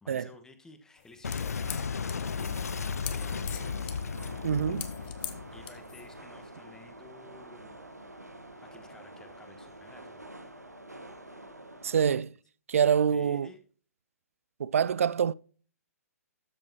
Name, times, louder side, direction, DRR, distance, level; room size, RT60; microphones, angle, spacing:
voice 1, 0.0-3.8 5.5-7.8 8.6-10.2 13.1-13.6, left 2 dB, 5° left, 1.3 m, -54 dB
sound 1, 1.0-6.2, left 12 dB, 35° left, 1.1 m, -43 dB
Boom, 1.2-6.5, left 6 dB, 70° left, 0.3 m, -35 dB
sound 2, 1.6-12.2, right 1 dB, 90° right, 1.3 m, -47 dB
voice 2, 4.4-4.9 11.8-12.3 12.7-13.5 14.6-15.3, right 7 dB, 60° right, 0.4 m, -25 dB
13.0 x 7.1 x 2.9 m
figure-of-eight pair, 120°, 9 cm